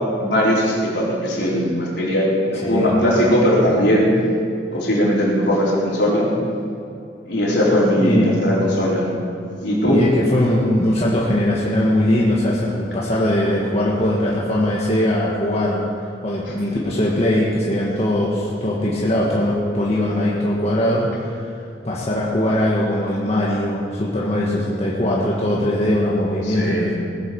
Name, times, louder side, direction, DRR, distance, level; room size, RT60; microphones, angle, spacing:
voice 1, 0.2-4.1 4.7-6.3 7.3-9.1 9.6-10.0 26.5-26.9, equal, 65° left, -6 dB, 4.5 m, -19 dB
voice 2, 2.6-3.0 8.0-8.6 9.9-15.9 16.2-21.5 21.8-26.9, left 1 dB, 35° left, -6 dB, 1.7 m, -20 dB
20.0 x 8.1 x 7.0 m, 2.5 s
head